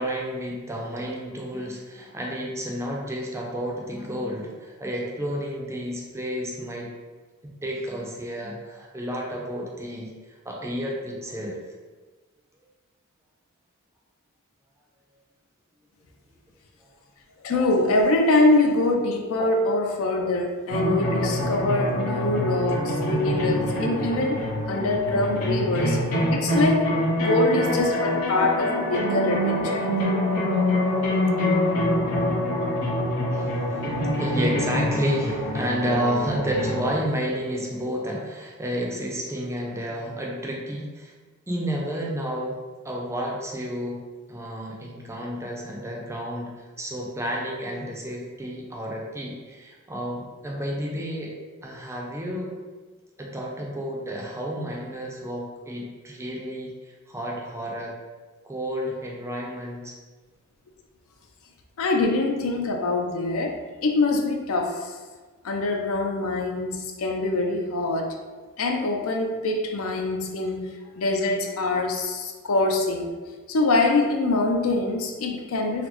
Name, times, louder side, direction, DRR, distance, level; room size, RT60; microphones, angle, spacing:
voice 1, 0.0-6.9 7.6-10.1 10.4-11.6 27.2-27.3 33.3-33.9 34.2-41.1 41.5-42.6 42.8-44.0 44.3-51.3 51.6-52.5 53.2-57.9 58.4-59.9, equal, 15° right, -2 dB, 0.4 m, -31 dB
voice 2, 17.4-24.4 24.7-26.0 26.3-26.9 27.2-29.9 61.8-63.6 63.8-65.0 65.4-68.2 68.6-73.1 73.5-75.9, left 2 dB, 65° left, 2 dB, 0.4 m, -24 dB
sound 1, 20.7-36.9, left 1 dB, 90° left, 1.1 m, -25 dB
4.0 x 2.0 x 2.9 m, 1.3 s
head